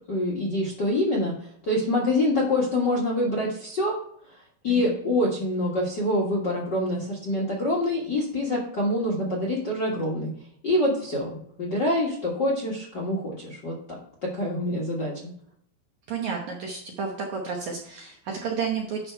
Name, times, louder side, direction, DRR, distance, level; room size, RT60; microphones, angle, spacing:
voice 1, 0.1-1.3 1.6-4.0 4.6-10.3 10.6-15.1, left 1 dB, 70° left, -2 dB, 1.0 m, -26 dB
voice 2, 16.1-19.1, right 5 dB, 70° right, 0 dB, 1.8 m, -31 dB
11.5 x 4.4 x 4.5 m, 0.63 s
omnidirectional pair, 4.7 m